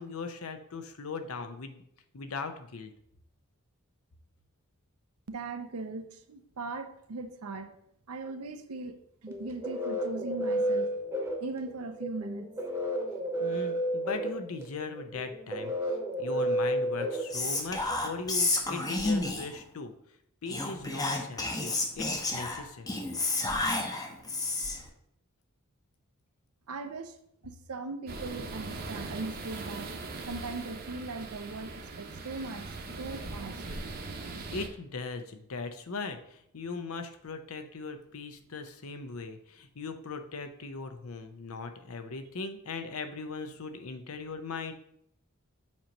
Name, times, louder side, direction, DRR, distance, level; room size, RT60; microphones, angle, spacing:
voice 1, 0.0-1.8 2.1-2.9 13.4-19.9 20.4-23.0 34.5-44.7, left 4 dB, 70° left, 0.7 m, -39 dB
voice 2, 5.3-7.8 8.1-10.9 11.4-12.5 26.7-27.2 27.4-29.9 30.3-33.6 42.2-42.3, right 3 dB, 80° right, 0.6 m, -39 dB
sound 1, 9.3-18.0, right 1 dB, 10° right, 1.0 m, -32 dB
Whispering, 17.3-19.6 20.5-24.9, left 2 dB, 15° left, 0.7 m, -31 dB
sound 2, 28.1-34.7, right 3 dB, 45° right, 0.8 m, -40 dB
7.3 x 3.0 x 5.2 m
head